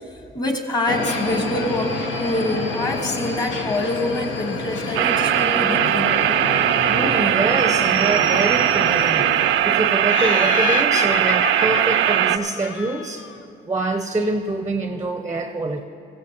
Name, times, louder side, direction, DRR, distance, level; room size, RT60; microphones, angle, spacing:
voice 1, 0.3-6.4, left 1 dB, 20° left, 3 dB, 1.4 m, -25 dB
sound 1, 0.9-9.5, left 3 dB, 90° left, 1.2 m, -29 dB
sound 2, 4.9-12.4, right 11 dB, 90° right, 0.4 m, -19 dB
voice 2, 6.9-9.3 9.6-13.3 13.6-15.9, right 3 dB, 15° right, 6 dB, 0.6 m, -25 dB
Laughter, 10.1-13.4, left 7 dB, 70° left, 0.6 m, -28 dB
15.5 x 15.0 x 2.9 m, 2.7 s
cardioid pair, 90°, 20 cm